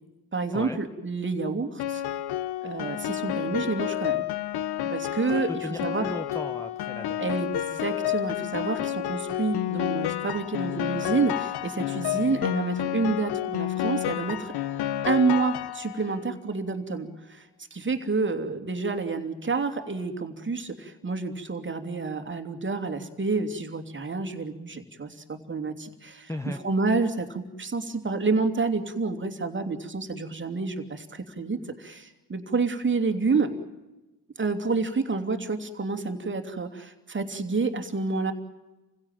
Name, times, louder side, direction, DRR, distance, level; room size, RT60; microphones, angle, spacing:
voice 1, 0.3-2.0 2.6-4.2 4.8-6.1 7.2-14.5 15.0-33.5 34.4-38.3, right 4 dB, 25° right, 7 dB, 2.8 m, -29 dB
Piano, 1.8-16.2, left 12 dB, 50° left, 1.1 m, -30 dB
voice 2, 5.5-7.2 26.3-26.6, left 1 dB, 5° left, 8 dB, 1.2 m, -36 dB
27.5 x 16.5 x 9.0 m, 1.1 s
hypercardioid pair, 60°, 48 cm